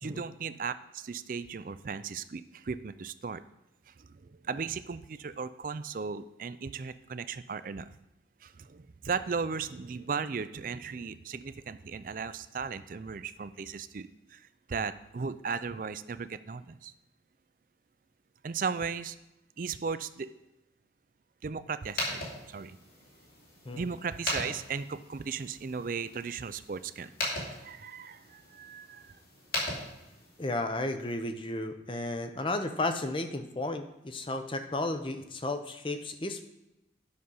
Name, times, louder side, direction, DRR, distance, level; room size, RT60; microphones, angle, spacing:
voice 1, 0.0-3.4 3.9-7.9 8.4-16.9 18.4-19.2 19.6-20.3 21.4-22.8 23.7-27.1 27.4-29.2, right 5 dB, 45° right, 13 dB, 0.4 m, -36 dB
sound 1, 21.8-30.5, left 1 dB, 55° left, 3.0 m, -39 dB
voice 2, 30.4-36.4, left 2 dB, 30° left, 8 dB, 0.7 m, -33 dB
10.0 x 6.4 x 5.5 m, 0.92 s
head